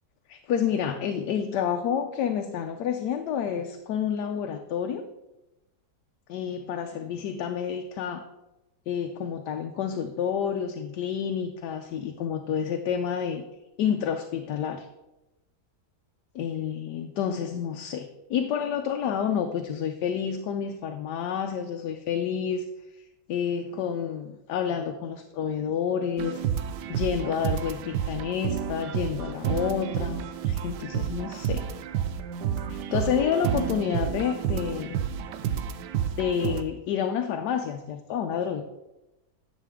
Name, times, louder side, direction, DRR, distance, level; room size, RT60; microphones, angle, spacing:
voice 1, 0.3-5.0 6.3-8.2 8.9-13.4 13.8-14.9 16.4-22.6 23.3-26.4 26.9-31.7 32.7-35.0 36.2-38.6, left 8 dB, 80° left, 6 dB, 1.2 m, -29 dB
sound 1, 26.2-36.6, right 8 dB, 85° right, 1.2 m, -30 dB
10.5 x 6.7 x 3.5 m, 0.98 s
omnidirectional pair, 1.8 m